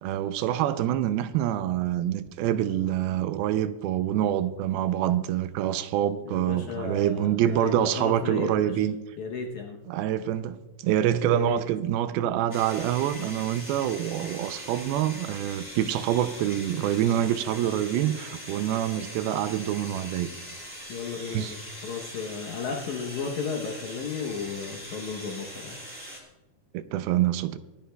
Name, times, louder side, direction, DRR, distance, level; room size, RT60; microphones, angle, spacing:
voice 1, 0.0-9.0 9.9-20.3 21.3-21.6 26.7-27.6, right 11 dB, 80° right, 2.4 m, -26 dB
voice 2, 6.3-8.8 9.2-9.8 11.3-11.6 20.9-25.8, left 5 dB, 75° left, 1.8 m, -34 dB
sound 1, 12.5-26.2, equal, 5° right, 1.9 m, -41 dB
25.0 x 10.0 x 2.2 m
omnidirectional pair, 4.5 m